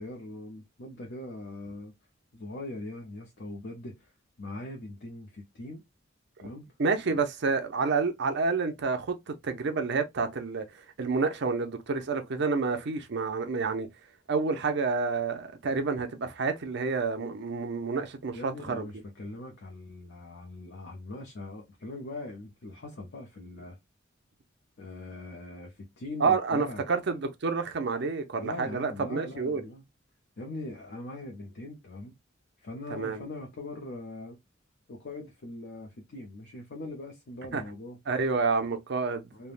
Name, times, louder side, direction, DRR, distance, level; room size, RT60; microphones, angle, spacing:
voice 1, 0.0-1.9 2.3-4.1 4.4-5.8 6.4-6.7 7.1-7.2 18.3-23.8 24.8-26.8 28.4-29.8 30.4-32.2 32.6-34.4 34.9-38.0 39.3-39.5, left 2 dB, 60° left, 0.6 m, -41 dB
voice 2, 6.8-10.6 11.0-13.9 14.3-18.9 26.2-29.6 32.9-33.2 37.5-37.6 38.1-39.3, right 4 dB, 60° right, 0.6 m, -29 dB
3.3 x 2.1 x 2.4 m
head